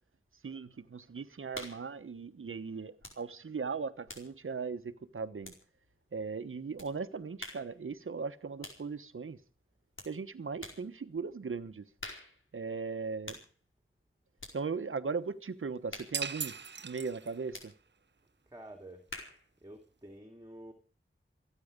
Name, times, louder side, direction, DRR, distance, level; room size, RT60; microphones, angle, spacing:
voice 1, 0.4-5.5 6.1-9.4 10.0-11.8 12.5-13.4 14.5-16.5 16.8-17.7, right 5 dB, 75° right, 1.2 m, -38 dB
sound 1, 1.5-1.9 3.0-3.3 3.6-5.9 6.8-7.0 7.4-7.8 8.6-8.9 10.0-10.2 10.6-10.9 12.0-12.4 13.2-13.5 14.4-14.6 15.9-16.2 17.5-17.8 19.1-19.5, left 2 dB, 70° left, 4.7 m, -47 dB
sound 2, 16.1-17.6, right 5 dB, 55° right, 0.7 m, -38 dB
voice 2, 18.5-19.0 19.6-20.7, right 1 dB, 15° right, 2.7 m, -49 dB
28.0 x 9.4 x 5.3 m
wide cardioid pair, 55°, 21 cm